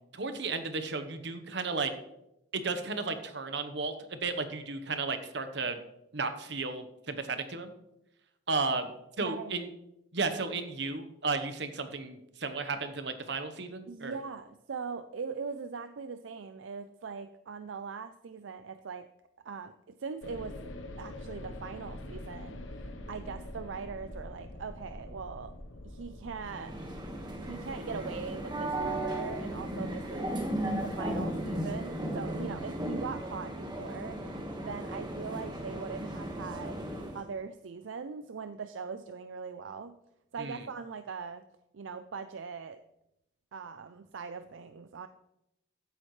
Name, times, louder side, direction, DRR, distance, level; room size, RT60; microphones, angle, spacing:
voice 1, 0.1-1.9 2.5-5.8 6.1-7.7 8.5-8.9 9.2-9.7 10.1-14.1 40.4-40.6, right 4 dB, 60° right, 9 dB, 1.1 m, -34 dB
voice 2, 9.2-9.7 13.9-19.1 19.4-20.6 21.0-22.6 23.1-25.5 25.8-26.8 27.4-30.3 30.8-34.2 34.6-40.0 40.3-41.5 41.7-42.8 43.5-45.1, right 5 dB, 75° right, 10 dB, 0.5 m, -41 dB
sound 1, 20.2-32.5, left 1 dB, 80° left, 1.0 m, -46 dB
sound 2, 26.4-37.3, right 1 dB, 20° right, 1.5 m, -36 dB
15.0 x 8.6 x 3.2 m, 0.85 s
head